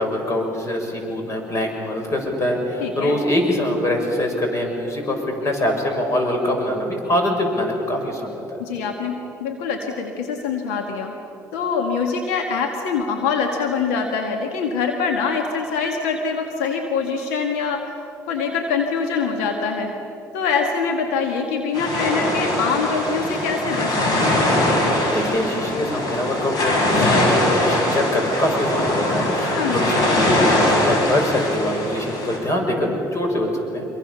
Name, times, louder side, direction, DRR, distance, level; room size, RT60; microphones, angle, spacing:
voice 1, 0.0-5.2 5.4-8.6 25.1-33.9, left 1 dB, 40° left, 3 dB, 6.9 m, -23 dB
voice 2, 2.8-3.1 8.6-11.1 11.5-17.9 18.3-19.9 20.3-24.1 29.5-30.1, left 5 dB, 90° left, 3 dB, 2.0 m, -24 dB
sound 1, 21.7-32.4, left 1 dB, 55° left, 7.0 m, -21 dB
26.0 x 23.5 x 7.0 m, 3.0 s
supercardioid pair, 75°, 8 cm